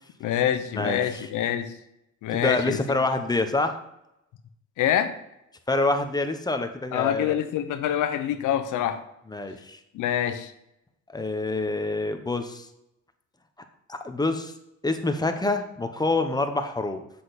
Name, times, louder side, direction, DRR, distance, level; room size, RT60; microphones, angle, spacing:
voice 1, 0.2-1.7 2.2-2.8 4.8-5.2 6.9-9.0 9.9-10.5, left 10 dB, 85° left, 10 dB, 0.8 m, -26 dB
voice 2, 0.8-1.3 2.3-3.7 5.7-7.4 9.3-9.8 11.1-12.7 13.9-14.5 14.8-17.0, left 2 dB, 15° left, 7 dB, 1.0 m, -26 dB
7.5 x 6.3 x 4.1 m, 0.83 s
cardioid pair, 90°, 30 cm